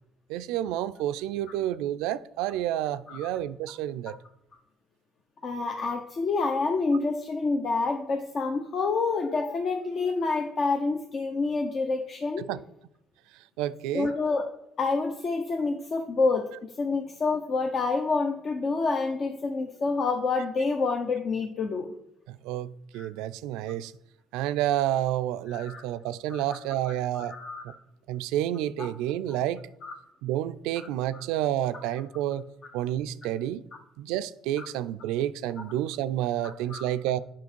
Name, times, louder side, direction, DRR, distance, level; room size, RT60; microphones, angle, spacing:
voice 1, 0.3-4.2 12.4-12.6 13.6-14.1 22.3-23.9 24.3-27.4 27.6-27.7 28.1-29.6 30.2-32.4 32.7-33.6 34.0-37.2, right 12 dB, 85° right, 0.3 m, -29 dB
voice 2, 5.4-12.5 13.9-14.5 14.8-21.9 22.9-23.1 25.5-25.8 26.3-26.4 26.8-27.8 28.8-28.9 29.8-29.9 30.8-30.9 31.1-31.2 34.6-34.7 36.4-36.9, left 4 dB, 50° left, 0.8 m, -28 dB
7.2 x 5.8 x 4.5 m
supercardioid pair, 70°, 0 cm